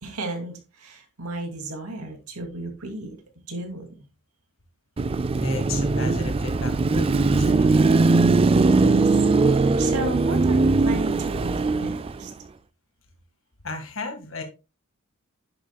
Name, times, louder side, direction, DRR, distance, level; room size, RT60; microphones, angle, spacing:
voice 1, 0.0-3.2 3.5-4.1 8.6-9.1 9.5-12.3, right 2 dB, 90° right, 4 dB, 2.4 m, -34 dB
Car passing by / Traffic noise roadway noise / Engine, 5.0-12.3, right 3 dB, 25° right, 0.3 m, -20 dB
voice 2, 5.4-7.7 13.6-14.4, left 3 dB, 60° left, 5 dB, 1.8 m, -34 dB
10.0 x 7.6 x 2.3 m, 0.28 s
head